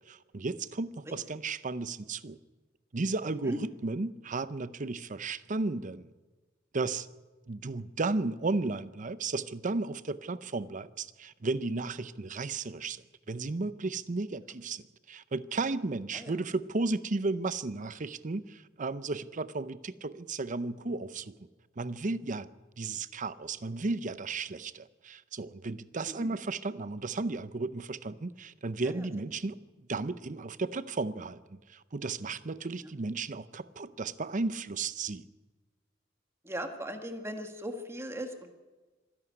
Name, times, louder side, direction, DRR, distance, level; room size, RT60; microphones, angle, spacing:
voice 1, 0.0-2.4 2.9-6.1 6.7-7.1 7.5-21.4 21.8-22.5 22.8-35.3, right 3 dB, 40° right, 0.7 m, -34 dB
voice 2, 36.4-38.5, equal, 15° right, 1.6 m, -39 dB
25.5 x 11.0 x 9.8 m
head